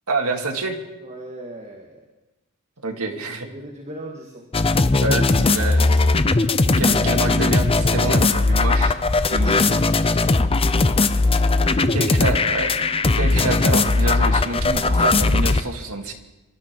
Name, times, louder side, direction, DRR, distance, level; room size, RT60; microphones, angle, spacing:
voice 1, 0.1-0.8 2.8-3.5 5.0-6.1 6.8-9.0 9.3-9.7 11.9-12.8 13.1-16.1, right 3 dB, 75° right, 3 dB, 2.1 m, -27 dB
voice 2, 1.0-2.1 2.9-4.5 9.9-11.1 11.4-12.1, right 1 dB, 30° right, 1 dB, 1.8 m, -39 dB
sound 1, 4.5-15.6, left 3 dB, 25° left, 0.6 m, -18 dB
sound 2, 10.2-11.8 12.0-12.5 13.8-13.9, left 3 dB, 60° left, 6.2 m, -47 dB
26.0 x 12.5 x 4.5 m, 1.0 s
head